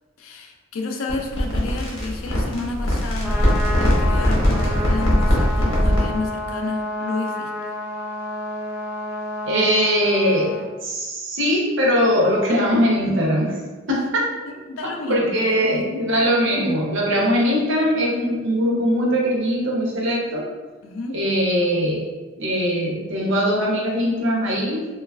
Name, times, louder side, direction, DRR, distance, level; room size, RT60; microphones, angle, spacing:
voice 1, 0.2-7.7 14.5-16.2 20.8-21.2, left 3 dB, 70° left, 3 dB, 0.4 m, -31 dB
sound 1, 1.1-6.2, equal, 85° left, 0.9 m, -20 dB
Trumpet, 3.1-10.7, left 1 dB, 10° right, 0.3 m, -30 dB
voice 2, 9.4-10.5 10.8-13.6 13.9-14.3 15.1-20.5 21.1-22.1 22.4-24.9, equal, 60° right, -3 dB, 0.7 m, -21 dB
3.1 x 2.3 x 2.3 m, 1.3 s
head